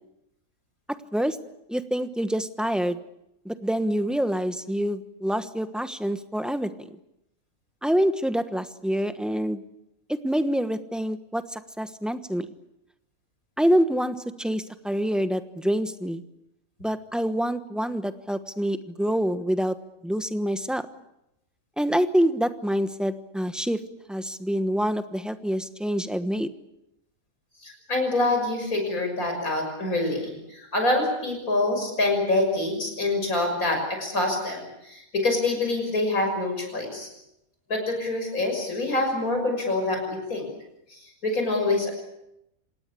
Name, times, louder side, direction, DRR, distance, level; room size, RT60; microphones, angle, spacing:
voice 1, 1.7-3.0 3.4-7.0 7.8-9.6 10.1-12.5 13.6-16.2 16.8-19.8 20.0-20.9 21.8-23.8 24.1-26.5, equal, ahead, 10 dB, 1.0 m, -26 dB
voice 2, 27.6-37.1 37.7-40.5 40.9-41.9, left 2 dB, 80° left, 3 dB, 6.8 m, -26 dB
27.0 x 19.0 x 8.5 m, 0.86 s
omnidirectional pair, 1.5 m